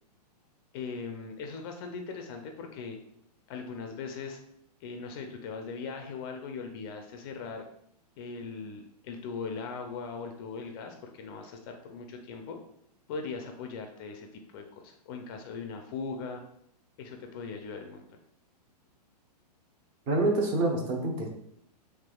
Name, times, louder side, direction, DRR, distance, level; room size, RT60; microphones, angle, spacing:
voice 1, 0.7-3.0 3.5-4.4 4.8-7.6 8.2-12.6 13.1-16.4 17.0-18.1, left 5 dB, 35° left, 4 dB, 0.4 m, -39 dB
voice 2, 20.1-21.3, right 2 dB, 30° right, 1 dB, 0.7 m, -27 dB
3.4 x 3.1 x 2.3 m, 0.72 s
hypercardioid pair, 140°, 21 cm